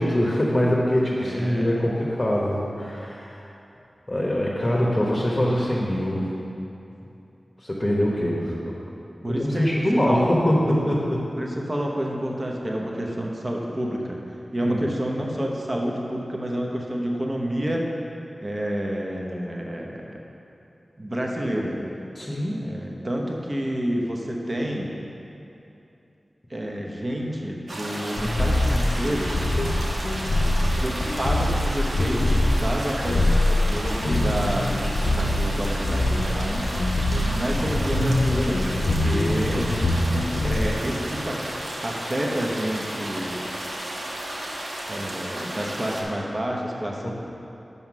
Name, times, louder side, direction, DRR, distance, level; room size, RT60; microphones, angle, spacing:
voice 1, 0.0-3.4 4.1-6.3 7.6-8.5 9.3-11.2 14.6-14.9 22.1-22.6 39.3-39.8 47.0-47.1, equal, 25° left, -4 dB, 1.0 m, -23 dB
voice 2, 1.2-1.9 9.2-9.7 10.0-10.4 11.4-14.2 14.5-17.8 18.4-20.2 21.0-21.8 22.6-24.9 26.5-29.4 30.8-39.7 40.4-43.4 44.9-47.1, equal, 35° right, -1 dB, 0.9 m, -29 dB
sound 1, 27.7-46.0, right 1 dB, 80° right, 1.0 m, -33 dB
sound 2, 28.1-40.7, left 1 dB, 85° left, 0.6 m, -24 dB
5.7 x 5.5 x 6.0 m, 2.8 s
wide cardioid pair, 75°, 0 cm